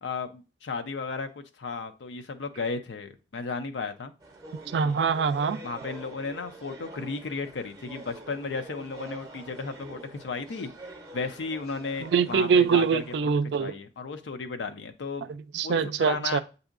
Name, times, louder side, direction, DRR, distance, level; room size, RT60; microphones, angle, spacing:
voice 1, 0.0-1.3 1.6-4.1 4.8-5.0 5.6-13.0 13.6-15.3 15.6-16.4, left 4 dB, 85° left, 0.5 m, -34 dB
sound 1, 4.2-13.2, right 2 dB, 20° right, 0.6 m, -46 dB
voice 2, 4.7-5.6 12.0-13.7 15.5-16.4, right 6 dB, 70° right, 0.3 m, -24 dB
7.9 x 2.7 x 2.4 m
head